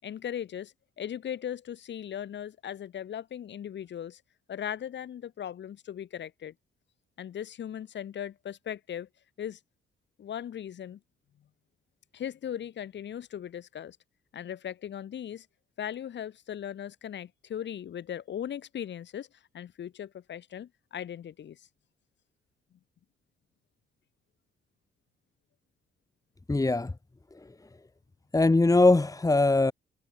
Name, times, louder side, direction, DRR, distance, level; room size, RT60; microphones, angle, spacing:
voice 1, 0.0-4.2 4.5-6.5 7.2-9.1 9.4-9.6 10.2-11.0 12.1-14.0 14.3-15.5 15.8-19.3 19.5-21.7, left 9 dB, 65° left, 7.4 m, -38 dB
voice 2, 26.5-26.9 27.3-27.5 28.3-29.7, left 2 dB, 15° left, 3.1 m, -21 dB
cardioid pair, 90°, 20 cm